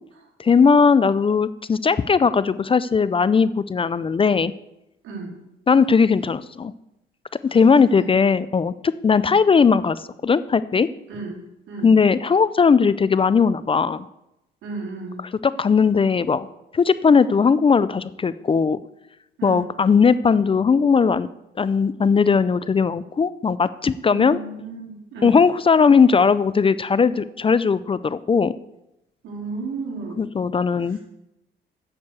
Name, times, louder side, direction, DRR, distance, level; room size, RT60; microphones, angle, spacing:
voice 1, 0.4-4.5 5.7-6.7 7.5-10.9 11.8-14.0 15.4-16.5 16.7-18.8 19.4-21.3 21.6-24.4 25.2-28.5 30.2-31.0, left 5 dB, 25° left, 16 dB, 0.4 m, -18 dB
voice 2, 5.0-5.4 7.5-8.1 9.2-9.3 11.1-11.4 11.7-11.9 14.6-15.2 19.4-19.7 24.1-25.3 29.2-30.2 30.9-31.0, right 3 dB, 85° right, -2 dB, 3.8 m, -34 dB
8.6 x 6.7 x 8.1 m, 0.87 s
cardioid pair, 90°, 20 cm